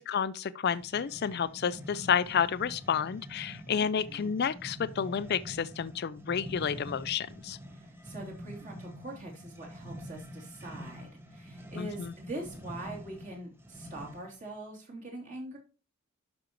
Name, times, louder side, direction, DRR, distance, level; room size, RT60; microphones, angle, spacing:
voice 1, 0.0-7.6 11.8-12.1, left 7 dB, 45° left, 0.4 m, -30 dB
sound 1, 0.7-14.4, equal, 10° right, 0.9 m, -46 dB
voice 2, 3.7-4.3 7.7-15.6, right 2 dB, 35° right, 3.0 m, -43 dB
11.5 x 5.2 x 3.0 m
head